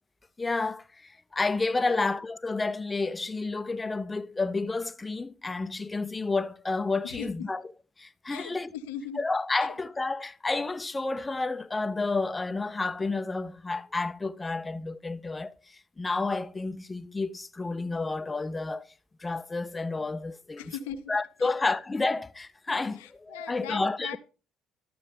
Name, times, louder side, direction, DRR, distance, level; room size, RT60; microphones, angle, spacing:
voice 1, 0.4-7.6 8.0-8.7 9.2-15.5 16.0-18.9 19.2-20.8 21.1-24.2, left 3 dB, 20° left, 0.5 m, -30 dB
voice 2, 8.3-9.2 9.6-9.7 20.6-21.1 23.0-24.2, left 9 dB, 80° left, 0.6 m, -40 dB
11.5 x 6.7 x 3.6 m
hypercardioid pair, 55°, 0 cm